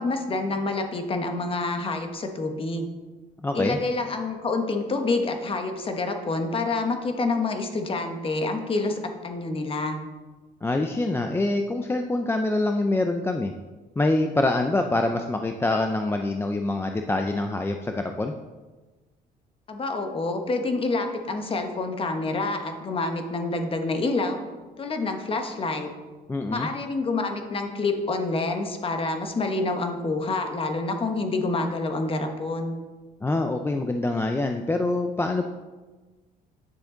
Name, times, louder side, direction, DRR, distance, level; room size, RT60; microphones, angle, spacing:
voice 1, 0.0-2.9 3.5-10.0 19.7-24.4 24.8-25.9 26.5-32.7, left 3 dB, 30° left, 5 dB, 1.2 m, -27 dB
voice 2, 3.4-3.8 10.6-13.5 14.0-18.3 26.3-26.7 33.2-35.4, left 2 dB, 15° left, 5 dB, 0.5 m, -25 dB
9.7 x 6.9 x 3.9 m, 1.3 s
cardioid pair, 110°, 17 cm